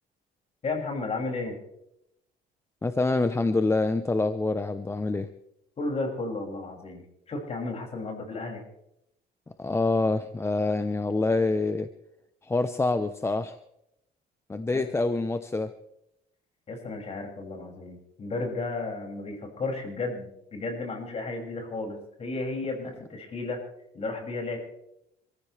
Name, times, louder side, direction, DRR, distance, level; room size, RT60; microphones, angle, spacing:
voice 1, 0.6-1.6 5.8-8.6 16.7-23.6 23.9-24.6, left 3 dB, 40° left, 1 dB, 6.5 m, -33 dB
voice 2, 2.8-5.3 9.6-11.9 12.4-13.6 14.5-15.7, left 3 dB, 15° left, 10 dB, 0.8 m, -26 dB
26.5 x 15.0 x 3.4 m, 0.80 s
cardioid pair, 110°, 17 cm